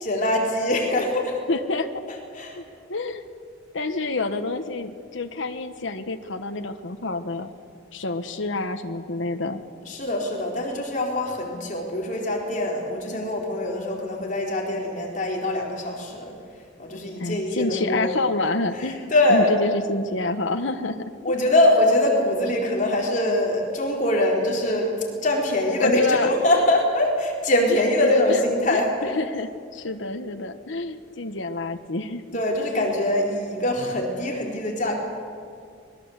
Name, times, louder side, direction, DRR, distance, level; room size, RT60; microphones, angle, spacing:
voice 1, 0.0-1.4 2.1-2.6 9.8-16.4 16.8-18.2 18.7-19.5 21.2-29.0 32.3-35.0, left 1 dB, 40° left, -1 dB, 4.3 m, -23 dB
voice 2, 1.5-1.9 2.6-2.7 2.9-3.2 3.7-7.5 7.9-9.6 17.2-21.3 25.8-26.3 27.7-28.4 28.7-32.2 32.7-32.9, left 2 dB, 75° left, 7 dB, 1.3 m, -28 dB
25.0 x 22.0 x 8.2 m, 2.3 s
head